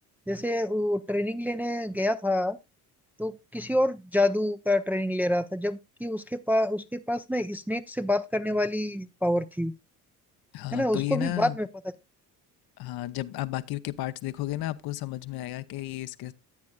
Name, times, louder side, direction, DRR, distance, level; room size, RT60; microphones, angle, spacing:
voice 1, 0.3-2.6 3.2-9.7 10.7-11.7, left 1 dB, 5° right, 0.5 m, -27 dB
voice 2, 10.5-11.6 12.8-16.3, left 15 dB, 50° left, 0.8 m, -33 dB
14.5 x 9.4 x 2.3 m
figure-of-eight pair, 50°, 47 cm